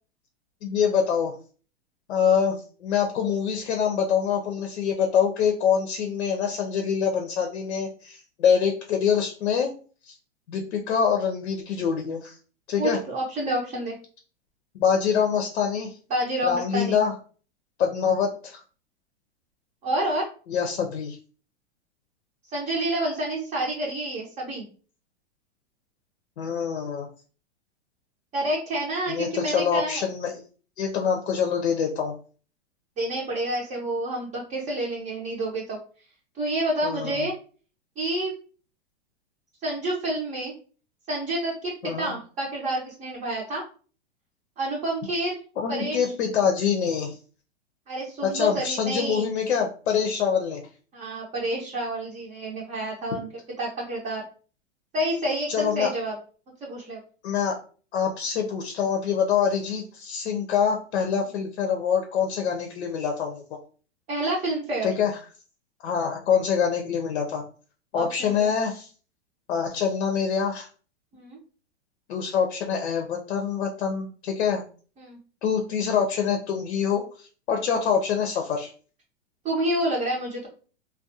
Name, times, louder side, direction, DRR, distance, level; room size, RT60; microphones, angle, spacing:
voice 1, 0.6-1.4 2.1-9.7 10.0-10.2 10.5-12.4 12.7-13.0 14.7-16.0 16.4-17.1 17.8-18.6 20.5-21.2 26.4-27.1 29.1-30.4 30.8-32.1 36.8-37.2 41.8-42.2 45.6-47.2 48.2-50.6 55.5-55.9 57.2-57.6 57.9-63.6 64.8-65.2 65.8-67.4 67.9-68.9 69.5-70.7 72.1-74.6 75.4-78.7, left 7 dB, 75° left, 3 dB, 0.6 m, -25 dB
voice 2, 12.8-14.0 16.1-17.0 19.8-20.3 22.5-24.6 28.3-30.0 33.0-35.8 36.4-37.4 38.0-38.3 39.6-40.5 41.1-43.6 44.6-45.4 45.7-46.1 47.9-49.3 50.9-53.3 53.6-54.2 54.9-56.1 56.6-57.0 64.1-64.9 67.9-68.5 71.1-71.4 75.0-75.2 79.4-80.5, right 1 dB, 25° right, -3 dB, 0.6 m, -28 dB
2.3 x 2.2 x 2.6 m, 0.39 s
hypercardioid pair, 115°, 33 cm